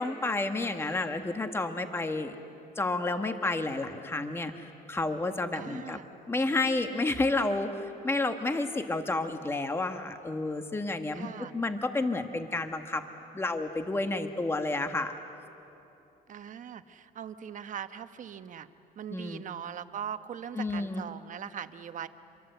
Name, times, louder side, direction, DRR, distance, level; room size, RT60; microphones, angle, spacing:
voice 1, 0.0-2.3 2.8-6.0 6.3-13.0 13.3-15.1 19.1-19.4 20.5-21.0, left 2 dB, 15° left, 7 dB, 1.4 m, -30 dB
voice 2, 5.5-6.1 11.1-11.5 16.3-18.7 19.0-22.1, right 8 dB, 50° right, 10 dB, 1.1 m, -40 dB
28.5 x 23.0 x 8.0 m, 2.9 s
cardioid pair, 110°, 17 cm